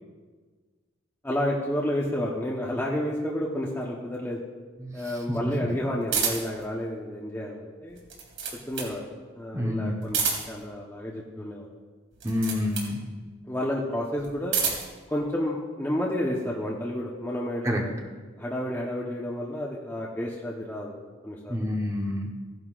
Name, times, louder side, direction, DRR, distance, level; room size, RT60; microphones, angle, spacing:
voice 1, 1.2-4.4 4.9-8.0 8.7-9.0 9.3-10.2 10.5-11.7 13.5-14.6 15.1-17.9 18.4-21.0 21.2-21.6, left 1 dB, 10° left, -4 dB, 1.0 m, -30 dB
voice 2, 4.8-5.5 9.5-10.0 12.2-13.0 17.6-18.1 21.5-22.4, left 1 dB, 15° right, 0 dB, 1.1 m, -29 dB
sound 1, 6.1-6.6 7.9-9.0 10.0-10.7 12.1-12.9 14.2-15.0, right 6 dB, 60° right, 2.9 m, -29 dB
16.0 x 11.0 x 2.5 m, 1.4 s
head